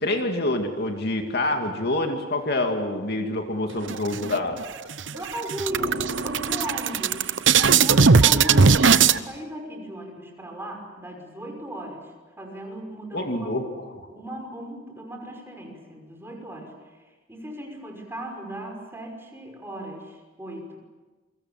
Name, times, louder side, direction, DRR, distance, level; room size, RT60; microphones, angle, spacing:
voice 1, 0.0-4.6 13.1-13.9, left 2 dB, 55° left, 4 dB, 2.4 m, -26 dB
sound 1, 3.9-4.6 5.0-5.1 5.4-9.2, right 5 dB, 65° right, 0.9 m, -18 dB
voice 2, 5.0-13.5 14.1-16.7 17.3-20.8, equal, 10° right, 2 dB, 5.6 m, -36 dB
28.5 x 24.0 x 7.4 m, 1.3 s
head